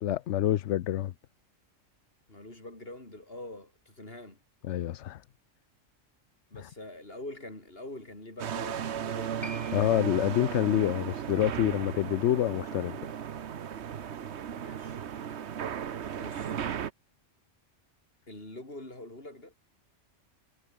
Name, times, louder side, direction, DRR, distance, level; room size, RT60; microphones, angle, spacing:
voice 1, 0.0-1.1 4.6-5.2 6.6-6.7 9.7-13.0, left 12 dB, 70° left, 0.9 m, -27 dB
voice 2, 2.3-4.4 6.5-9.8 14.5-15.0 16.2-16.6 18.3-19.5, left 1 dB, 50° left, 5.7 m, -45 dB
sound 1, 8.4-16.9, right 8 dB, 65° right, 1.2 m, -36 dB
Piano, 9.4-16.4 16.6-16.7, right 1 dB, 20° right, 6.5 m, -52 dB
omnidirectional pair, 1.3 m